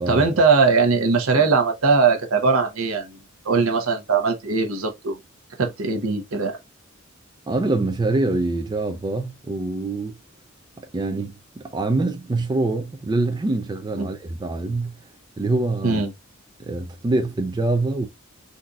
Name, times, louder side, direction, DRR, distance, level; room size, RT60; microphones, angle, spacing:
voice 1, 0.1-3.2 3.4-5.2 5.6-6.6 14.0-14.1 15.8-16.1, right 4 dB, 75° right, 0.8 m, -20 dB
voice 2, 7.5-10.2 10.8-15.0 15.4-16.0 16.6-18.1, right 2 dB, 20° right, 0.3 m, -25 dB
3.8 x 2.7 x 2.3 m
head